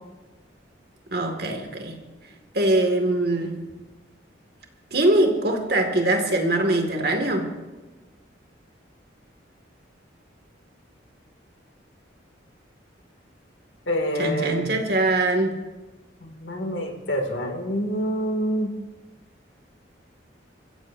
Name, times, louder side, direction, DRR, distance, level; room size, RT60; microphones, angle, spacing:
voice 1, 1.1-2.0 2.5-3.5 4.9-7.5 14.2-15.5, right 1 dB, 55° right, 3 dB, 2.2 m, -22 dB
voice 2, 13.9-14.7 16.2-18.7, equal, 80° left, 2 dB, 2.6 m, -27 dB
23.5 x 15.5 x 2.7 m, 1.2 s
head